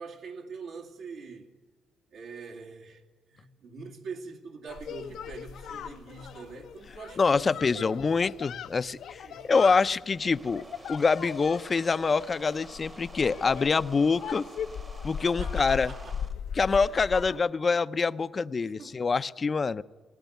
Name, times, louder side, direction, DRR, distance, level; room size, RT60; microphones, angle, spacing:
voice 1, 0.0-1.5 2.1-7.9 9.2-9.6 15.2-16.2 16.6-16.9 18.4-19.0 19.7-19.8, right 4 dB, 80° right, 2.5 m, -44 dB
sound 1, 4.7-17.4, left 8 dB, 70° left, 0.7 m, -39 dB
voice 2, 7.2-10.6 10.9-14.4 15.0-15.9 16.6-19.8, left 4 dB, 35° left, 0.6 m, -25 dB
agressive car, 10.0-16.3, right 2 dB, 25° right, 1.1 m, -49 dB
19.5 x 17.5 x 9.3 m
cardioid pair, 90°, 0 cm